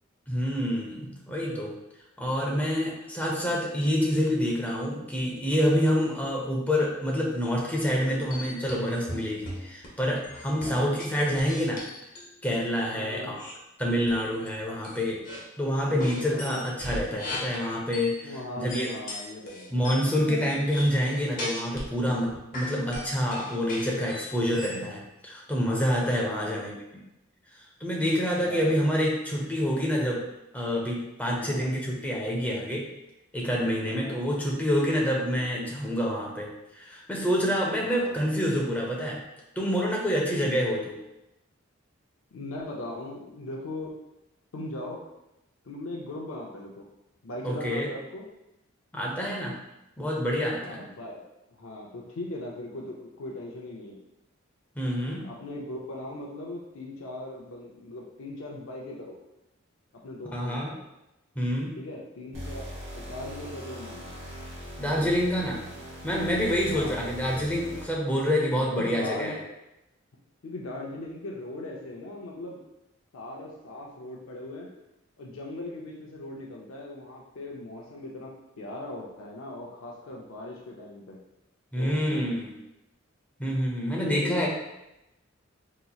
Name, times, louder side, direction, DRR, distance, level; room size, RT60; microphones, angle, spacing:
voice 1, 0.3-1.7 2.2-11.8 12.4-13.5 13.8-15.2 15.6-18.9 19.7-26.8 27.8-30.2 30.5-32.9 33.3-36.5 36.7-39.2 39.6-41.0 47.4-47.9 48.9-49.5 50.0-50.9 54.8-55.3 60.3-60.7 61.4-61.8 64.8-65.6 66.0-69.4 81.7-82.5 83.4-84.5, equal, 10° left, -2 dB, 0.6 m, -27 dB
sound 1, 8.0-9.9 10.2-12.3 13.4-13.5 14.1-14.5 14.8-15.4 16.0-18.2 18.7-21.9 22.2-24.8, left 1 dB, 40° left, 0.9 m, -38 dB
voice 2, 10.5-10.9 13.0-13.4 16.2-16.7 18.2-19.7 26.1-26.7 28.4-28.9 31.2-31.7 33.8-34.3 37.8-38.2 40.6-40.8 42.3-44.0 44.5-45.0 45.6-46.8 47.2-48.3 50.6-54.0 55.2-59.2 60.0-60.8 61.8-64.1 66.7-67.1 68.7-69.4 70.4-72.6 73.1-74.7 75.2-78.3 78.6-81.2 81.7-82.2 84.0-84.5, left 2 dB, 80° left, -2 dB, 0.5 m, -39 dB
sound 2, 62.3-68.1, equal, 60° right, 1.1 m, -41 dB
4.0 x 2.9 x 2.3 m, 0.90 s
head